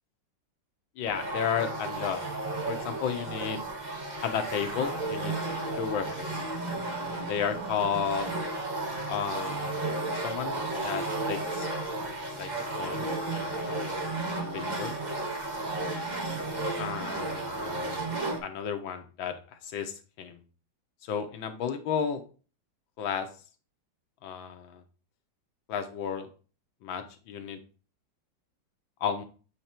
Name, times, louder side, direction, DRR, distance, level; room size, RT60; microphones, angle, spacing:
voice 1, 1.0-2.2 2.7-3.6 4.2-5.3 5.8-6.4 7.3-8.3 9.1-9.8 10.1-11.7 12.4-12.5 12.8-13.1 13.3-14.1 14.5-14.9 16.8-18.1 18.4-20.4 21.0-22.2 23.0-23.3 24.2-24.8 25.7-26.3 26.8-27.6 29.0-29.2, left 7 dB, 80° left, 7 dB, 1.7 m, -33 dB
sound 1, 1.1-18.4, right 2 dB, 30° right, 1.0 m, -33 dB
8.2 x 3.3 x 4.3 m, 0.36 s
omnidirectional pair, 2.1 m